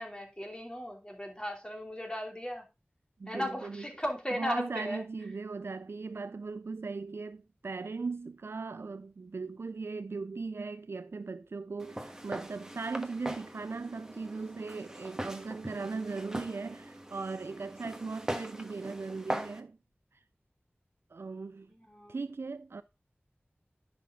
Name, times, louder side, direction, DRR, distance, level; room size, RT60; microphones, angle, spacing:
voice 1, 0.0-2.6 3.3-5.0 21.7-22.2, equal, 20° left, 2.9 m, -36 dB
voice 2, 3.2-3.9 4.3-19.8 21.1-21.7 22.1-22.8, right 4 dB, 75° right, 0.4 m, -38 dB
Walk footsteps, 11.8-19.6, right 1 dB, 15° right, 1.4 m, -41 dB
10.0 x 6.1 x 3.7 m
wide cardioid pair, 60°, 4 cm